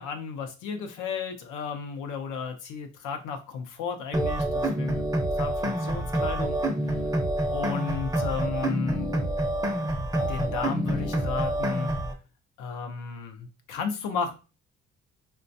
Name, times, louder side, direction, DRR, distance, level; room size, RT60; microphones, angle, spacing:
voice 1, 0.0-5.0 5.3-6.6 6.8-7.2 7.5-9.1 10.3-11.9 12.6-14.3, left 5 dB, 90° left, 5 dB, 0.6 m, -33 dB
sound 1, 4.1-12.1, right 1 dB, 10° right, 0.5 m, -27 dB
3.1 x 2.3 x 2.6 m, 0.32 s
cardioid pair, 90°, 30 cm